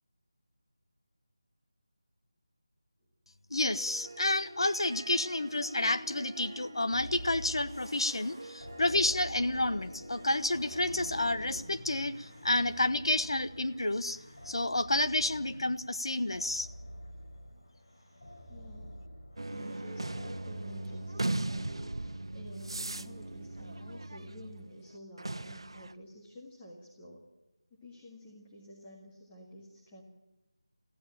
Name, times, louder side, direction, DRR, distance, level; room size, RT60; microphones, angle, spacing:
voice 1, 3.5-14.2 14.5-16.7, left 2 dB, 80° left, 12 dB, 1.1 m, -30 dB
Harp, 3.5-14.8, right 1 dB, 25° right, 1.2 m, -50 dB
sound 1, 6.9-21.4, equal, 65° left, 7.9 m, -48 dB
voice 2, 18.5-19.1 19.4-27.3 27.7-30.0, equal, 10° left, -3 dB, 1.7 m, -51 dB
sound 2, 19.4-24.7 25.2-25.9, right 2 dB, 85° right, 1.0 m, -38 dB
20.0 x 15.5 x 8.8 m, 1.0 s
figure-of-eight pair, 180°, 3 cm